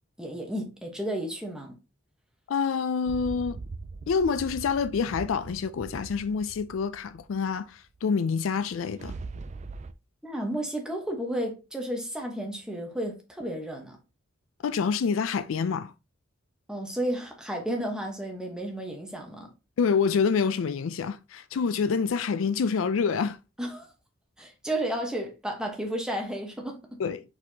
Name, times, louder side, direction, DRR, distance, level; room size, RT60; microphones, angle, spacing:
voice 1, 0.2-1.8 10.2-14.0 16.7-19.5 23.6-23.9 24.4-27.0, right 1 dB, 5° right, 1.0 m, -32 dB
voice 2, 2.5-3.6 4.1-9.2 14.6-15.9 19.8-23.4 27.0-27.2, left 5 dB, 70° left, 0.4 m, -27 dB
sound 1, 3.1-7.7 8.6-9.9, right 3 dB, 35° right, 0.3 m, -41 dB
4.7 x 4.1 x 2.7 m
head